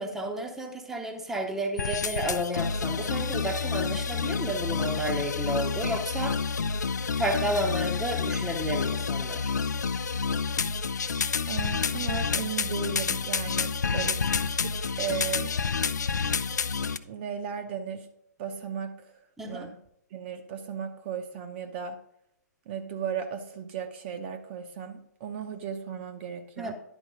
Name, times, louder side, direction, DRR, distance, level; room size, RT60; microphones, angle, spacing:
voice 1, 0.0-6.4 7.2-9.5 19.4-19.7 26.6-26.7, right 1 dB, 5° right, 3 dB, 0.8 m, -31 dB
sound 1, 1.8-17.0, left 5 dB, 65° left, 0.5 m, -29 dB
voice 2, 11.5-15.5 17.0-18.1 18.4-19.2 19.4-19.8 20.1-22.0 22.7-26.7, right 7 dB, 35° right, 5 dB, 0.7 m, -36 dB
11.0 x 4.6 x 4.9 m, 0.74 s
figure-of-eight pair, 125°, 10 cm